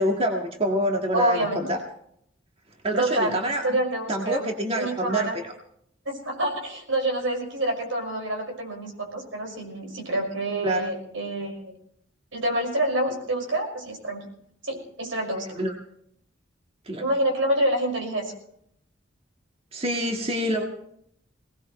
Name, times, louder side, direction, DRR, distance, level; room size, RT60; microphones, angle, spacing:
voice 1, 0.0-1.8 2.8-3.6 4.1-5.3 10.6-10.8 15.6-15.7 16.9-17.0 19.7-20.6, equal, 30° right, 1 dB, 1.8 m, -26 dB
voice 2, 1.1-1.6 3.0-4.5 4.7-5.3 6.1-11.7 12.3-14.3 14.6-15.5 17.0-18.3, right 1 dB, 85° right, 2 dB, 5.8 m, -27 dB
22.5 x 19.0 x 3.2 m, 0.70 s
head